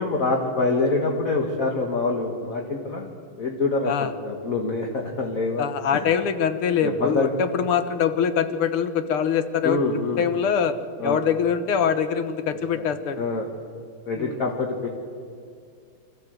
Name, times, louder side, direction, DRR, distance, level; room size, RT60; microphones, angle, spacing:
voice 1, 0.0-3.1 3.4-6.1 6.8-7.3 9.6-10.3 11.0-11.2 12.7-12.9 13.2-13.5 14.1-14.9, left 3 dB, 40° left, 1 dB, 1.9 m, -25 dB
voice 2, 5.6-9.8 10.2-10.8 11.0-13.2 14.2-14.4, left 7 dB, 80° left, 10 dB, 2.0 m, -23 dB
25.5 x 13.5 x 7.9 m, 2.2 s
omnidirectional pair, 2.4 m